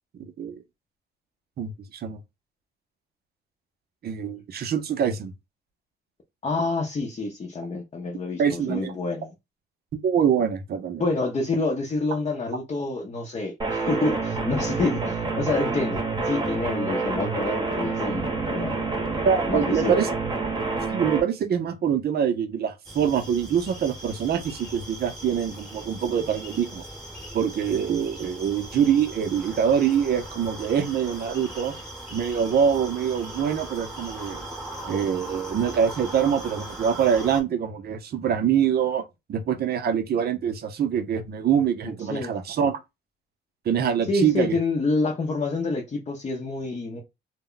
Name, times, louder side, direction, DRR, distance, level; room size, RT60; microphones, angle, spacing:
voice 1, 0.1-0.6 1.6-2.2 4.0-5.3 8.4-8.9 10.0-11.0 19.2-20.1 20.9-26.8 27.3-31.7 32.1-34.4 34.9-42.8 43.7-44.6, right 8 dB, 55° right, 0.6 m, -24 dB
voice 2, 6.4-9.3 11.0-18.7 19.5-20.0 42.1-42.3 44.1-47.0, left 3 dB, 35° left, 0.7 m, -27 dB
sound 1, 13.6-21.2, right 3 dB, 20° right, 0.9 m, -27 dB
sound 2, 22.8-37.4, right 1 dB, 5° left, 1.0 m, -39 dB
2.2 x 2.1 x 3.7 m
cardioid pair, 90°, 20 cm